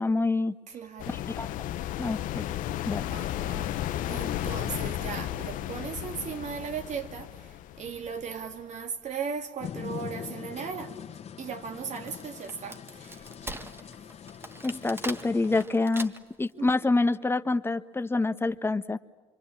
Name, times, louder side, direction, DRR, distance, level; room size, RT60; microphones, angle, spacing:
voice 1, 0.0-0.5 1.1-1.5 2.0-2.4 2.9-3.0 14.6-16.1 16.4-19.0, left 3 dB, 15° left, 1.3 m, -27 dB
voice 2, 0.7-1.2 3.1-3.7 4.1-11.0 11.4-13.3 16.6-16.7, right 6 dB, 60° right, 2.6 m, -37 dB
sound 1, 1.0-8.6, left 12 dB, 75° left, 1.0 m, -34 dB
sound 2, 9.6-15.7, left 8 dB, 50° left, 1.9 m, -42 dB
Wood, 11.7-16.5, right 2 dB, 15° right, 1.7 m, -41 dB
26.0 x 25.0 x 8.8 m
supercardioid pair, 80°, 14 cm